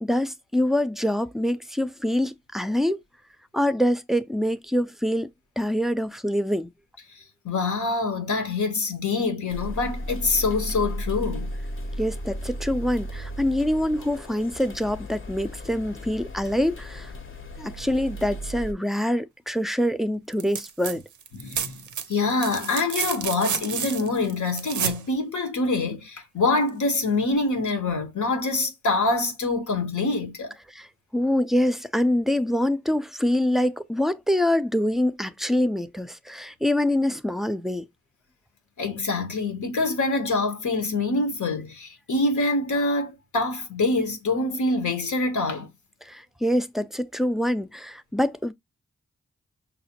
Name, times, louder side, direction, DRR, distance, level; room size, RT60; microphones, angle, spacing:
voice 1, 0.0-3.0 3.5-5.3 5.6-6.7 12.0-17.1 17.6-21.0 30.7-30.9 31.1-37.9 46.0-48.5, left 1 dB, ahead, 0.4 m, -25 dB
voice 2, 7.4-11.5 21.3-21.8 22.1-30.5 38.8-45.7, left 3 dB, 85° left, 0.9 m, -25 dB
sound 1, 9.5-18.7, equal, 45° left, 0.7 m, -35 dB
sound 2, 20.3-20.9 21.2-25.0 26.7-26.8, right 8 dB, 90° right, 0.4 m, -30 dB
5.6 x 2.1 x 2.8 m
cardioid pair, 45°, 29 cm